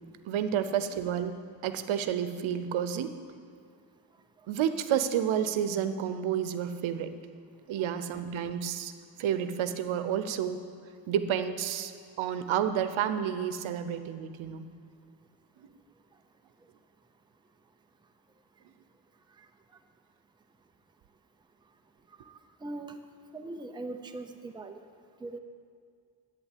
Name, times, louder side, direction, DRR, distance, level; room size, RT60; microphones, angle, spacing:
voice 1, 0.2-3.2 4.5-7.1 7.7-8.9 9.2-10.7 11.1-11.9 12.2-14.7 15.6-15.7, right 9 dB, 90° right, 10 dB, 0.9 m, -30 dB
voice 2, 22.3-23.0 23.3-24.8 25.2-25.4, right 2 dB, 10° right, 5 dB, 0.6 m, -40 dB
11.0 x 9.2 x 8.4 m, 2.2 s
cardioid pair, 180°, 47 cm